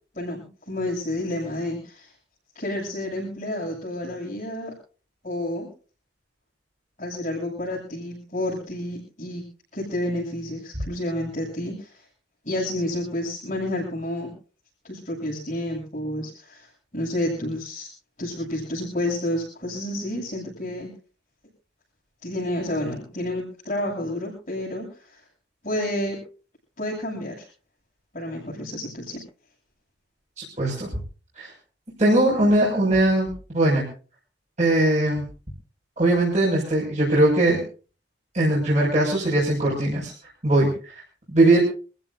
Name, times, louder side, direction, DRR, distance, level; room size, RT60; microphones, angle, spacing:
voice 1, 0.1-2.1 2.5-4.7 5.2-5.7 7.0-9.4 9.7-11.9 12.4-14.3 14.8-16.7 16.9-17.9 18.2-20.9 22.2-25.2 25.6-26.2 26.8-27.5 28.1-29.2, left 1 dB, 45° left, -5 dB, 7.9 m, -30 dB
voice 2, 30.4-30.9 31.4-31.5 32.0-33.8 34.6-35.2 36.0-37.6 38.3-40.1 40.4-40.9 41.3-41.6, right 1 dB, 40° right, -5 dB, 6.3 m, -20 dB
27.5 x 15.5 x 2.7 m, 0.37 s
head